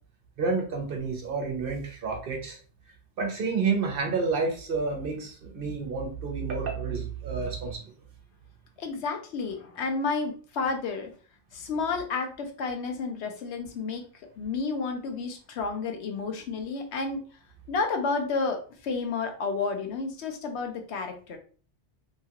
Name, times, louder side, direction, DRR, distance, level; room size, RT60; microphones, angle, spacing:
voice 1, 0.4-2.6 3.2-7.8, right 4 dB, 60° right, 2 dB, 0.9 m, -29 dB
voice 2, 8.8-11.1 11.5-14.0 14.4-17.2 17.7-21.4, left 4 dB, 80° left, 4 dB, 0.9 m, -31 dB
2.9 x 2.3 x 2.8 m, 0.40 s
omnidirectional pair, 1.1 m